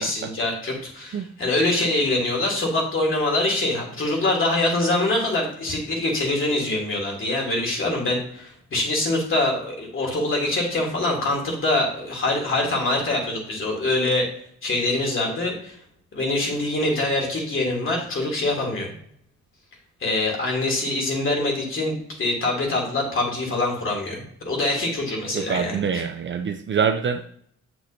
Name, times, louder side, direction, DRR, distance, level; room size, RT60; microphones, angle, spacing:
voice 1, 0.0-14.3 14.6-15.8 16.1-18.9 20.0-26.0, left 2 dB, 45° left, -1 dB, 2.9 m, -24 dB
voice 2, 25.3-27.3, right 6 dB, 40° right, 7 dB, 0.5 m, -25 dB
8.0 x 6.2 x 2.7 m, 0.66 s
cardioid pair, 90°, 30 cm